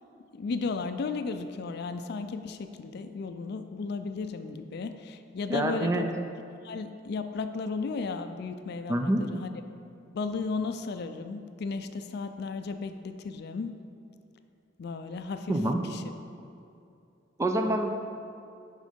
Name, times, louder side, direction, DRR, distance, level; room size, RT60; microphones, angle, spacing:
voice 1, 0.3-6.1 6.6-9.5 10.1-13.7 14.8-15.5 15.9-16.0, left 4 dB, 60° left, 9 dB, 0.4 m, -34 dB
voice 2, 5.5-6.1 8.9-9.2 15.5-15.8 17.4-17.9, right 1 dB, 15° right, 4 dB, 0.4 m, -26 dB
6.4 x 5.2 x 5.2 m, 2.6 s
head